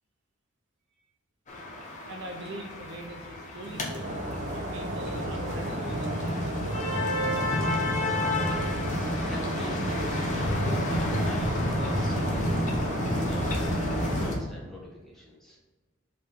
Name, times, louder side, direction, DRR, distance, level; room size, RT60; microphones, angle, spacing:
sound 1, 1.5-14.4, left 1 dB, 40° left, 1.1 m, -30 dB
voice 1, 2.1-4.1 4.5-7.1, right 1 dB, 60° right, 1 dB, 0.9 m, -42 dB
sound 2, 2.8-13.7, equal, 85° left, 1.3 m, -50 dB
sound 3, 4.0-14.3, right 1 dB, 40° right, 1.1 m, -34 dB
voice 2, 9.3-13.5 14.2-15.6, left 2 dB, ahead, -5 dB, 1.6 m, -44 dB
5.2 x 3.5 x 5.5 m, 1.3 s
head